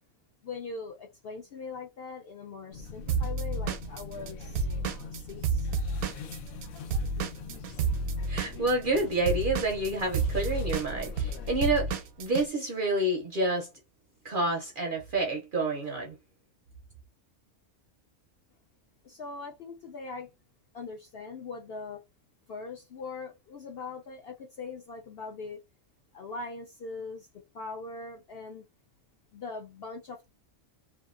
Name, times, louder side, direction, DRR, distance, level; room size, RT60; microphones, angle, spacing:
voice 1, 0.4-4.7 5.1-5.7 19.0-20.3 20.7-22.0 22.5-25.6 26.1-28.7 29.3-30.3, left 4 dB, 65° left, 0.6 m, -41 dB
sound 1, 2.7-11.7, left 2 dB, 85° left, 1.1 m, -42 dB
Drum kit / Drum, 3.1-6.7 6.9-12.5, right 4 dB, 85° right, 1.0 m, -30 dB
voice 2, 8.3-13.7 14.2-16.1, right 2 dB, 55° right, 0.6 m, -29 dB
2.7 x 2.3 x 2.4 m
omnidirectional pair, 1.4 m